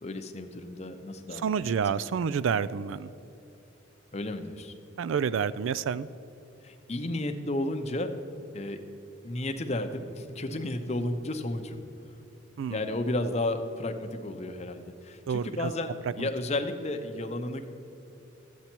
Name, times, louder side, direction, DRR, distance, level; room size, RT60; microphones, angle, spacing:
voice 1, 0.0-1.6 1.9-2.0 4.1-4.7 6.6-8.1 8.5-8.8 9.2-11.8 12.7-17.7, left 1 dB, 35° left, 6 dB, 0.6 m, -33 dB
voice 2, 1.3-3.1 5.0-6.1 12.6-13.0 15.3-15.7 16.0-16.3, right 6 dB, 90° right, 17 dB, 0.3 m, -29 dB
13.0 x 8.3 x 4.4 m, 2.8 s
head